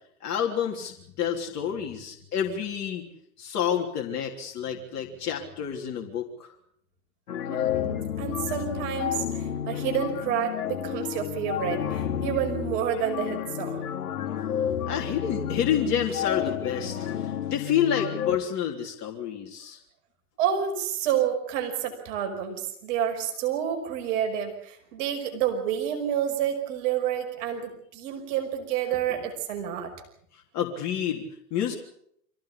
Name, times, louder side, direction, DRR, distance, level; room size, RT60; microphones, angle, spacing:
voice 1, 0.2-3.1 3.4-6.5 14.9-19.8 29.1-29.2 30.5-31.7, left 8 dB, 35° left, 0 dB, 3.5 m, -29 dB
sound 1, 7.3-18.4, left 9 dB, 70° left, 2.5 m, -31 dB
voice 2, 7.5-13.9 20.4-29.9, right 9 dB, 55° right, 4 dB, 5.6 m, -29 dB
25.0 x 16.5 x 8.5 m, 0.70 s
hypercardioid pair, 100°, 45 cm